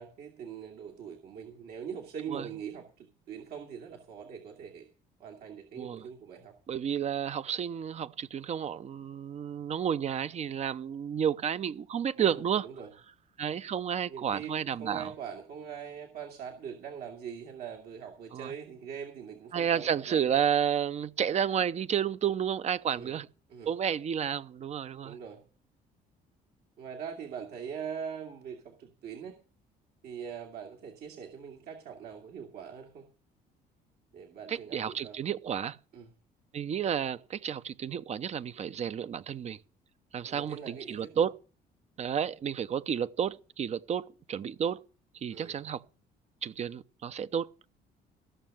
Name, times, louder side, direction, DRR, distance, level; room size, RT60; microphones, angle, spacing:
voice 1, 0.0-4.9 5.2-6.5 12.1-12.9 14.1-20.3 22.9-23.2 23.5-23.7 25.0-25.4 26.8-29.4 30.0-33.1 34.1-35.2 35.9-36.1 40.3-41.3 45.3-45.6, right 7 dB, 70° right, 2.3 m, -42 dB
voice 2, 5.8-6.1 6.7-12.7 13.4-15.1 18.3-18.5 19.5-23.3 23.7-25.2 34.5-35.8 36.5-39.6 40.1-41.3 42.0-44.8 45.2-45.8 46.4-47.5, right 8 dB, 40° right, 0.7 m, -31 dB
15.0 x 6.5 x 7.3 m
cardioid pair, 110°, 17 cm